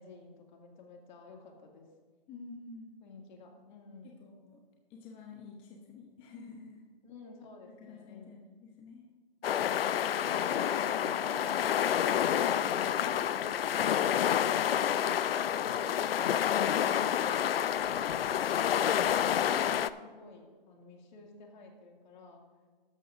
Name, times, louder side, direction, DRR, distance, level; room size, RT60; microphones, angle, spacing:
voice 1, 0.0-1.9 3.0-4.2 7.0-8.4 10.2-11.6 17.5-22.4, left 3 dB, 50° left, 1 dB, 2.2 m, -51 dB
voice 2, 2.3-2.9 4.0-4.6 4.9-6.8 7.7-9.0 17.1-17.5, left 4 dB, 20° left, 0 dB, 0.8 m, -49 dB
sound 1, 9.4-19.9, left 9 dB, 80° left, 0.5 m, -29 dB
13.0 x 11.5 x 2.6 m, 1.5 s
hypercardioid pair, 150°, 29 cm